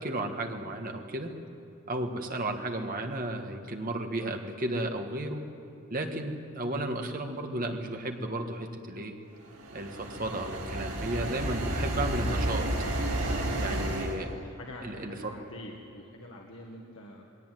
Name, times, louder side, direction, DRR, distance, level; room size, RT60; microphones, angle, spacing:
voice 1, 0.0-1.3 1.9-5.4 5.9-9.1 9.7-12.7 13.6-14.3 14.8-15.3, right 1 dB, 40° right, 4 dB, 1.6 m, -33 dB
sound 1, 9.5-14.2, right 1 dB, 85° right, 4.0 m, -31 dB
voice 2, 14.6-17.3, left 1 dB, 65° left, 0 dB, 1.7 m, -45 dB
21.0 x 17.5 x 9.2 m, 2.7 s
head